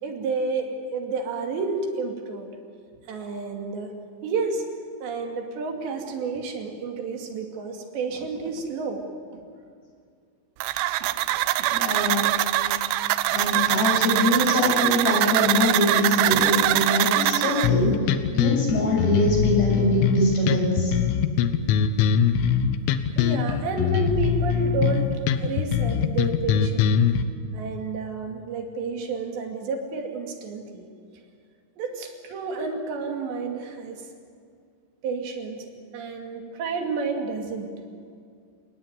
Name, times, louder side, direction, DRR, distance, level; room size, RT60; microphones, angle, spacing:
voice 1, 0.0-2.5 2.9-4.0 4.2-4.7 5.0-9.1 9.3-9.4 11.0-11.1 11.6-11.7 23.2-27.0 27.5-30.9 31.8-34.0 35.0-35.7 35.9-37.7, right 4 dB, 65° right, 3 dB, 4.4 m, -30 dB
sound 1, 10.6-17.7, right 15 dB, 80° right, 2.5 m, -23 dB
voice 2, 11.7-12.3 13.3-20.9, left 1 dB, 60° left, 0 dB, 8.6 m, -23 dB
sound 2, 17.6-27.2, left 8 dB, 90° left, 3.6 m, -22 dB
29.0 x 19.0 x 9.3 m, 2.3 s
omnidirectional pair, 5.6 m